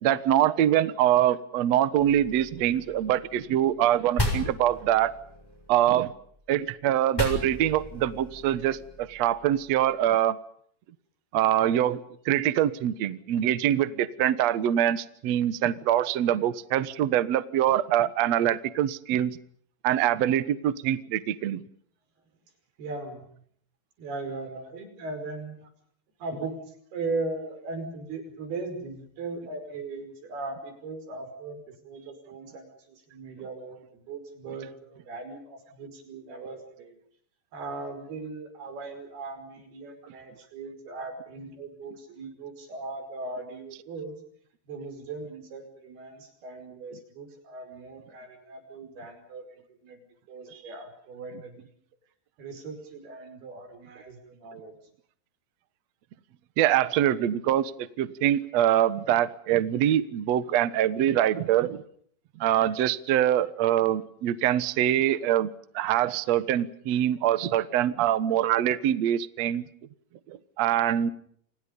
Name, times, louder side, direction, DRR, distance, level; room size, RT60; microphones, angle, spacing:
voice 1, 0.0-5.1 5.7-6.1 6.5-10.4 11.3-12.0 12.2-19.4 19.8-21.6 56.6-61.8 62.4-65.5 65.7-69.6 70.3-71.1, right 11 dB, 85° right, 15 dB, 1.5 m, -24 dB
sound 1, 2.0-3.9 4.2-6.5 7.1-9.9, left 1 dB, 5° left, 6.5 m, -35 dB
voice 2, 22.8-23.2 24.0-25.7 26.2-37.0 37.5-44.2 44.7-49.5 49.8-51.5 52.4-54.8, right 3 dB, 60° right, 8 dB, 7.3 m, -38 dB
29.5 x 26.5 x 5.4 m, 0.63 s
omnidirectional pair, 5.0 m